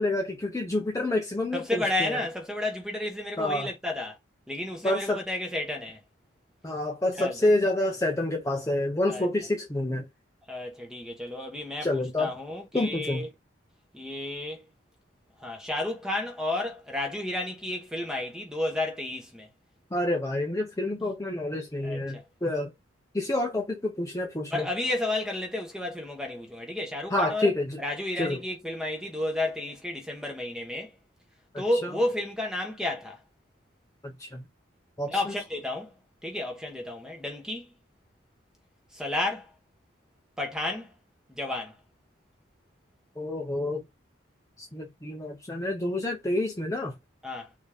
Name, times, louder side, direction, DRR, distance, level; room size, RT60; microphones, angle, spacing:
voice 1, 0.0-2.2 3.4-3.7 4.8-5.2 6.6-10.0 11.8-12.3 12.7-13.3 19.9-22.7 23.1-24.7 27.1-27.8 28.2-28.4 31.5-31.9 34.0-34.4 35.0-35.3 43.2-43.8 44.6-46.9, left 1 dB, 15° left, 0.7 m, -28 dB
voice 2, 1.5-4.2 4.5-6.0 7.2-7.4 9.1-9.3 10.5-13.3 13.9-14.6 15.4-19.5 21.8-22.2 24.5-27.5 27.8-30.9 31.6-33.2 35.1-36.0 36.2-37.7 38.9-39.5 40.4-40.9 41.3-41.7 47.2-47.5, left 1 dB, 5° right, 1.1 m, -32 dB
4.1 x 3.6 x 3.5 m
head